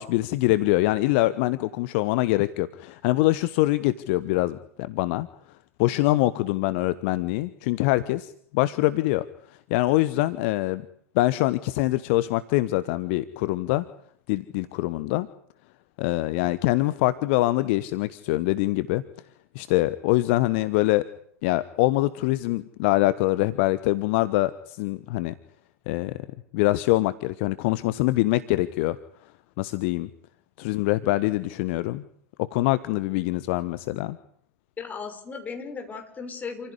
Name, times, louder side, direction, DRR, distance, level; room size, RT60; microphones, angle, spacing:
voice 1, 0.0-5.3 5.8-9.2 9.7-10.9 11.1-13.8 14.3-15.3 16.0-19.0 19.5-21.1 21.4-25.3 25.9-26.2 26.5-29.0 29.6-30.1 30.6-32.0 32.4-34.2, left 18 dB, 50° left, 15 dB, 1.1 m, -24 dB
voice 2, 34.8-36.7, left 5 dB, 20° left, 6 dB, 6.1 m, -36 dB
28.5 x 16.0 x 9.9 m, 0.65 s
figure-of-eight pair, 90°, 8 cm